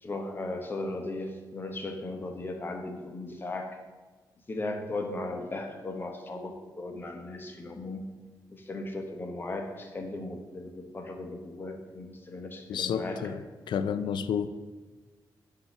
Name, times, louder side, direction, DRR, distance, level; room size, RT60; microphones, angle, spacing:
voice 1, 0.0-3.8 4.5-8.0 8.5-13.3, left 2 dB, 25° left, 4 dB, 0.8 m, -37 dB
voice 2, 12.7-13.4 13.7-14.5, left 7 dB, 85° left, 13 dB, 0.4 m, -30 dB
8.0 x 2.7 x 5.8 m, 1.3 s
wide cardioid pair, 140°, 8 cm